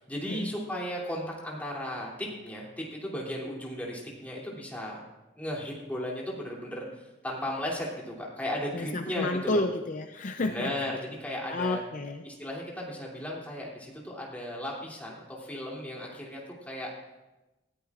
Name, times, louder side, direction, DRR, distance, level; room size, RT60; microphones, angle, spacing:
voice 1, 0.0-5.0 5.4-9.7 10.4-11.8 12.2-16.4 16.7-16.9, equal, 10° left, -4 dB, 2.7 m, -35 dB
voice 2, 8.7-10.7 11.5-12.2, left 2 dB, 45° left, 6 dB, 0.5 m, -30 dB
19.0 x 14.0 x 2.4 m, 1.0 s
head